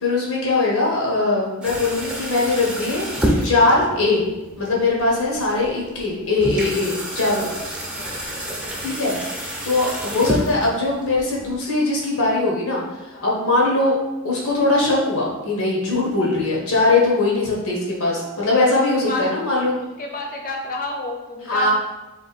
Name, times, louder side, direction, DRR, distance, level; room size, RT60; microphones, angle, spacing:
voice 1, 0.0-3.0 3.4-4.2 4.6-7.5 8.8-14.0 14.2-19.7 21.5-21.7, left 2 dB, 85° left, -3 dB, 1.4 m, -21 dB
sound 1, 1.6-11.6, equal, 5° right, 0.6 m, -29 dB
voice 2, 7.2-8.2 8.4-8.7 13.1-13.4 18.1-18.3 19.1-19.3 20.0-21.7, left 2 dB, 40° left, 1 dB, 0.7 m, -31 dB
3.7 x 3.1 x 4.2 m, 1.1 s
head